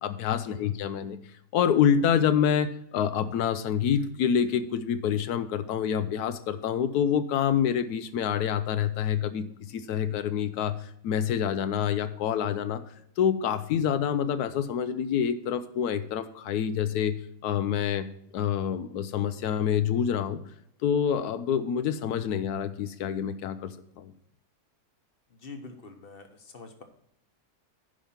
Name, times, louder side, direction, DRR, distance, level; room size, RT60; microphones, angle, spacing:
voice 1, 0.0-1.2 1.5-12.8 13.2-18.1 18.3-20.4 20.8-24.1, left 8 dB, 85° left, 11 dB, 1.2 m, -27 dB
voice 2, 25.3-26.8, left 3 dB, 40° left, 6 dB, 1.1 m, -45 dB
10.0 x 5.2 x 5.7 m, 0.73 s
omnidirectional pair, 1.6 m